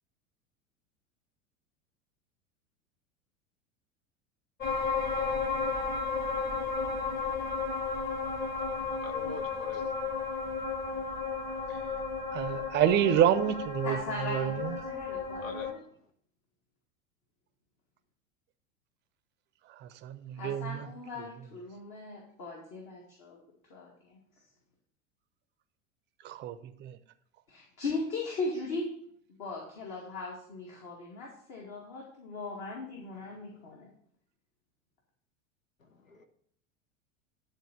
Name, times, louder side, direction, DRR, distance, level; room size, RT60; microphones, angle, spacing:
sound 1, 4.6-15.7, left 4 dB, 25° left, 1.6 m, -33 dB
voice 1, 9.0-9.9 15.4-15.8 33.3-33.7 35.8-36.2, left 5 dB, 70° left, 7 dB, 1.2 m, -44 dB
voice 2, 12.3-14.0 14.3-14.7 20.0-20.9 26.2-26.5 26.8-27.0, right 10 dB, 25° right, 12 dB, 0.6 m, -27 dB
voice 3, 13.8-15.8 20.3-23.4 23.7-24.2 27.5-28.9 29.4-33.9, left 3 dB, 45° left, -2 dB, 2.1 m, -38 dB
10.5 x 3.9 x 6.5 m, 0.65 s
figure-of-eight pair, 85°, 41 cm